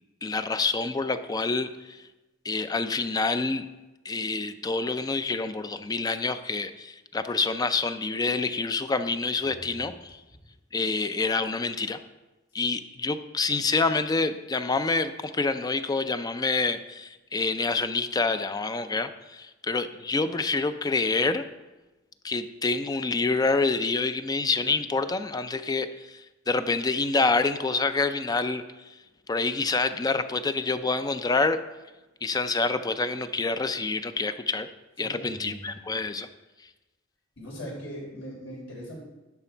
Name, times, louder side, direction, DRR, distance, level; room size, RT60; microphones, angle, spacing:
voice 1, 0.2-2.0 2.4-3.7 4.0-9.9 10.7-12.0 12.5-21.5 22.2-29.0 29.3-31.6 32.2-34.7 35.0-36.3, left 3 dB, 20° left, 10 dB, 0.4 m, -27 dB
voice 2, 9.4-9.9 35.0-35.7 37.4-39.0, equal, 75° left, -3 dB, 3.6 m, -40 dB
11.0 x 5.8 x 4.4 m, 1.1 s
head